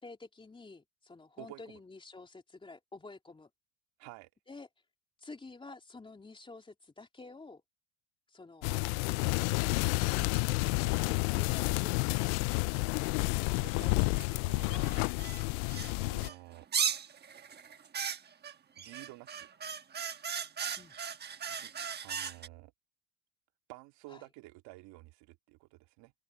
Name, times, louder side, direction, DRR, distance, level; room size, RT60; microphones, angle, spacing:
voice 1, 0.0-3.5 4.5-4.7 5.2-7.6 8.3-8.7 20.8-20.9 24.1-24.2, left 3 dB, 10° left, 3.4 m, -50 dB
voice 2, 1.4-1.8 4.0-4.3 10.1-11.1 12.7-15.1 16.0-16.7 18.8-19.5 21.5-21.7 22.0-22.7 23.7-26.1, right 20 dB, 60° right, 2.2 m, -52 dB
sound 1, 8.6-16.3, left 28 dB, 65° left, 0.5 m, -30 dB
sound 2, 14.2-14.3 14.8-15.9 16.2-22.5, right 7 dB, 20° right, 1.2 m, -37 dB
open air
supercardioid pair, 135°, 45 cm